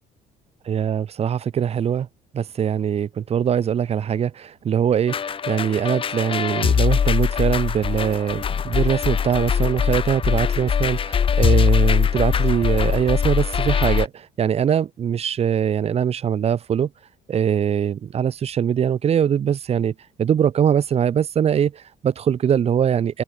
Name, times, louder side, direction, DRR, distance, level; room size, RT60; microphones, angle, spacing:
voice 1, 0.6-2.1 2.3-16.9 17.3-23.2, right 8 dB, 40° right, 0.7 m, -22 dB
sound 1, 5.1-14.1, left 7 dB, 30° left, 0.6 m, -21 dB
cardioid pair, 110°, 17 cm